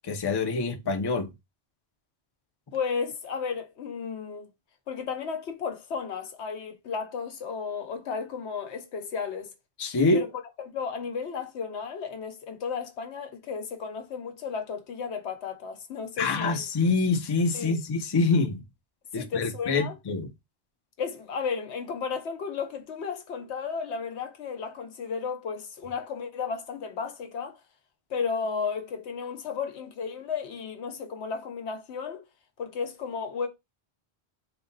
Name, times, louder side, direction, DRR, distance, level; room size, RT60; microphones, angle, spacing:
voice 1, 0.0-1.3 9.8-10.3 16.2-18.6 19.1-20.3, left 3 dB, 35° left, 0.4 m, -25 dB
voice 2, 2.7-4.5 4.9-9.5 10.1-10.3 10.6-16.6 17.5-17.8 19.1-19.9 21.0-27.6 28.1-32.2 32.6-33.5, left 5 dB, 90° left, 1.1 m, -33 dB
3.7 x 2.2 x 3.9 m
omnidirectional pair, 1.1 m